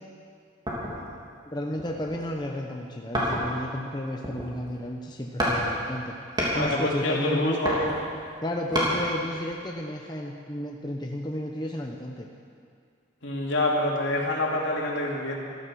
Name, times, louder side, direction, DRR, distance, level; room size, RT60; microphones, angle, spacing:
sound 1, 0.7-1.1 1.7-2.4 3.1-3.7 4.1-4.8 5.4-5.6 5.9-6.6 7.4-8.9 9.5-9.6, equal, 20° right, 3.0 m, -29 dB
voice 1, 1.5-6.1 6.5-7.6 8.4-12.3, left 1 dB, 20° left, 0 dB, 0.9 m, -32 dB
voice 2, 6.5-7.9 13.2-15.4, left 1 dB, 70° left, -2 dB, 2.8 m, -26 dB
15.5 x 13.5 x 6.3 m, 2.3 s
head